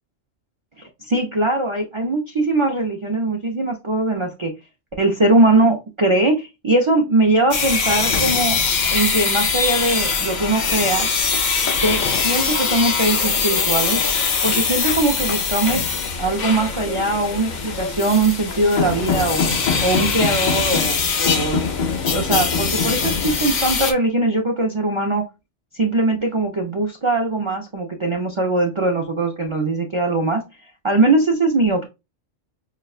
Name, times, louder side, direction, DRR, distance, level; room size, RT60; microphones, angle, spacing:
voice 1, 1.1-4.5 5.0-8.6 8.9-11.1 11.8-14.0 14.4-15.8 16.2-19.4 19.8-21.6 22.1-25.2 25.8-30.4 30.8-31.8, right 2 dB, 45° right, 0.4 m, -20 dB
sound 1, 7.5-23.9, left 5 dB, 50° left, 0.5 m, -22 dB
5.8 x 2.2 x 2.3 m
omnidirectional pair, 1.3 m